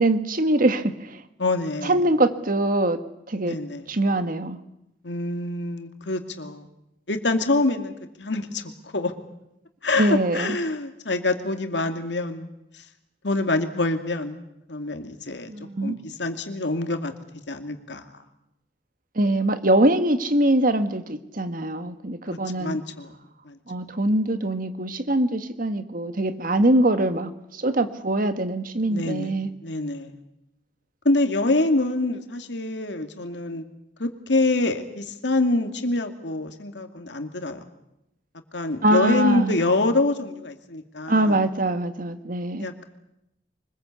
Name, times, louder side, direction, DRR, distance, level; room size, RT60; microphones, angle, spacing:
voice 1, 0.0-1.2 1.8-3.0 3.3-3.6 3.9-4.6 10.0-10.6 15.5-16.0 19.1-22.8 23.7-29.5 38.8-39.6 41.1-42.7, right 1 dB, 50° right, 10 dB, 1.6 m, -23 dB
voice 2, 1.4-2.0 3.4-3.9 5.0-6.7 7.1-9.1 9.8-12.5 12.7-12.8 13.2-14.4 14.7-15.5 15.8-17.1 17.5-18.0 22.3-23.2 23.4-23.6 28.9-29.3 29.6-30.1 31.0-33.7 34.0-37.6 38.5-41.5 42.6-42.8, left 2 dB, 80° left, 6 dB, 2.4 m, -26 dB
24.5 x 21.0 x 8.4 m, 0.85 s
head